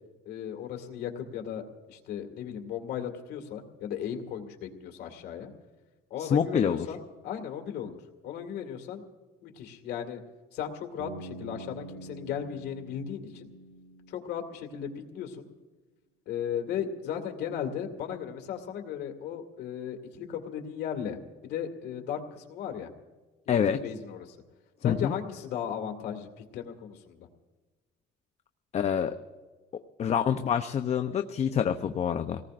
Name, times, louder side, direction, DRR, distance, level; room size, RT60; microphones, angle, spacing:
voice 1, 0.3-1.6 1.9-5.5 6.1-8.0 8.2-9.0 9.4-10.2 10.5-13.5 14.1-15.5 16.3-22.9 23.5-24.4 24.8-27.3, left 8 dB, 75° left, 4 dB, 2.1 m, -36 dB
voice 2, 6.2-6.9 23.5-23.8 24.8-25.1 28.7-29.1 30.0-32.4, left 8 dB, 40° left, 8 dB, 0.7 m, -26 dB
Bass guitar, 11.0-15.0, right 2 dB, 70° right, 5.8 m, -46 dB
27.0 x 18.5 x 2.5 m, 1.3 s
cardioid pair, 110°, 17 cm